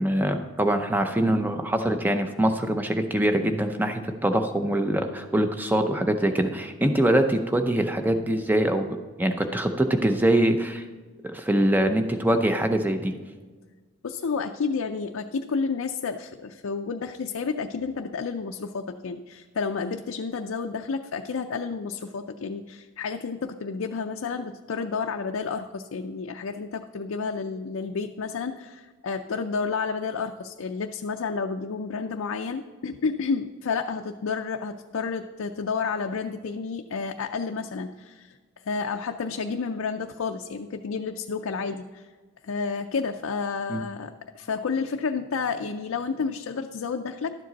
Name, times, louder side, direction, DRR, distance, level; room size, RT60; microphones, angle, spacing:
voice 1, 0.0-10.8 11.3-13.1 43.7-43.8, right 1 dB, 10° right, 6 dB, 0.6 m, -23 dB
voice 2, 14.0-38.4 38.7-42.1 42.4-47.3, left 5 dB, 75° left, 4 dB, 0.4 m, -30 dB
12.0 x 7.7 x 4.0 m, 1.4 s
head